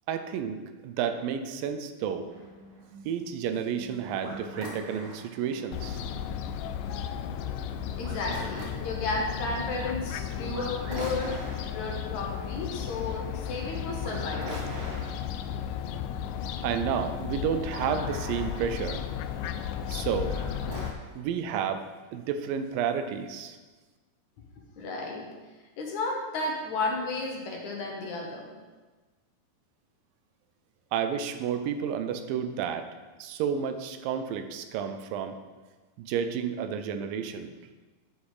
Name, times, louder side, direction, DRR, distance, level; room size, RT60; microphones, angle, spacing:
voice 1, 0.1-2.3 3.1-6.0 16.6-19.0 19.9-20.4 21.1-21.9 22.1-23.6 30.9-32.9 33.2-35.4 36.0-37.5, right 7 dB, 85° right, 9 dB, 2.4 m, -31 dB
sound 1, 2.3-20.9, right 1 dB, 45° right, 1.5 m, -44 dB
Fowl, 5.7-20.9, left 9 dB, 80° left, 2.1 m, -34 dB
voice 2, 8.0-11.3 11.7-14.7 24.8-25.3 25.8-28.5, left 3 dB, 65° left, 0 dB, 2.3 m, -33 dB
9.9 x 5.9 x 4.9 m, 1.3 s
omnidirectional pair, 3.9 m